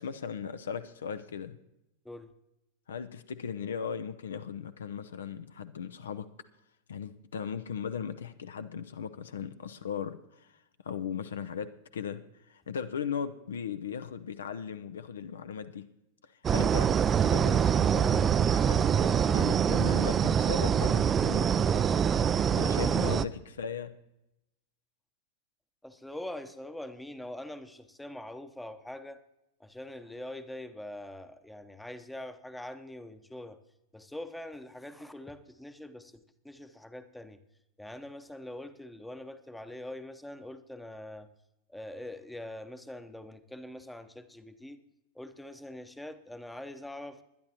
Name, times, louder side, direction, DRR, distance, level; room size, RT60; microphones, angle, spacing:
voice 1, 0.0-1.6 2.9-6.3 6.9-15.9 16.2-21.5 22.5-23.3 23.6-23.9, left 7 dB, 65° left, 11 dB, 0.6 m, -38 dB
sound 1, 16.4-23.2, right 8 dB, 25° right, 0.4 m, -25 dB
voice 2, 22.5-23.1 25.8-29.2 29.6-33.6 33.9-36.1 36.4-37.4 37.8-41.3 41.7-44.9 45.1-47.2, left 1 dB, 5° left, 11 dB, 0.8 m, -43 dB
20.5 x 11.0 x 2.9 m, 0.88 s
figure-of-eight pair, 90°, 0 cm